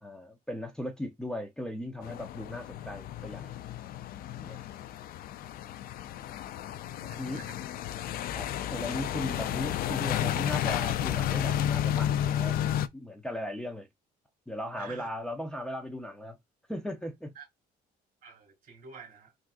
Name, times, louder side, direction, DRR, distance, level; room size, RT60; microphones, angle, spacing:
voice 1, 0.0-3.6 4.3-4.6 7.1-7.4 8.3-12.6 12.9-13.9 14.5-16.4 16.7-17.3, left 1 dB, 5° left, 0.5 m, -37 dB
sound 1, 2.0-12.9, left 11 dB, 60° left, 0.4 m, -32 dB
voice 2, 7.0-7.6 14.8-15.1 17.4-17.5 18.2-19.3, right 6 dB, 55° right, 2.2 m, -48 dB
3.6 x 2.5 x 2.4 m
cardioid pair, 110°, 17 cm